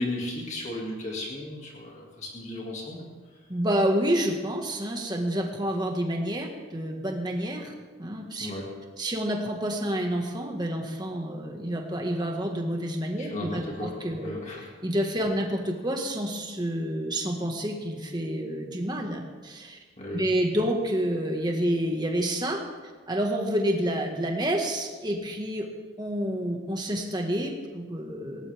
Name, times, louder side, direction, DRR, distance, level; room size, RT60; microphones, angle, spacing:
voice 1, 0.0-3.0 8.4-8.7 13.2-14.0 14.2-14.7 20.0-20.3, left 1 dB, 35° left, -2 dB, 2.5 m, -35 dB
voice 2, 3.5-7.7 8.0-8.5 9.0-14.3 14.8-19.8 20.1-22.6 23.1-25.7 26.0-28.5, equal, 20° right, 2 dB, 1.8 m, -28 dB
19.0 x 17.5 x 3.6 m, 1.4 s
head